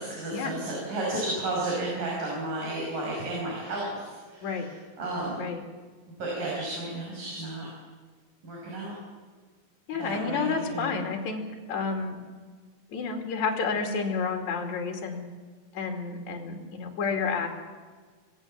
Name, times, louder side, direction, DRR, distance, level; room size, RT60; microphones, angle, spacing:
voice 1, 0.0-4.6 5.0-5.4 6.2-7.7 8.4-8.9 10.0-11.0, right 2 dB, 60° right, -3 dB, 7.0 m, -32 dB
voice 2, 9.9-11.4 11.7-12.2 12.9-15.2 15.7-17.5, left 5 dB, 55° left, 3 dB, 3.9 m, -30 dB
25.5 x 19.0 x 7.6 m, 1.5 s
omnidirectional pair, 4.2 m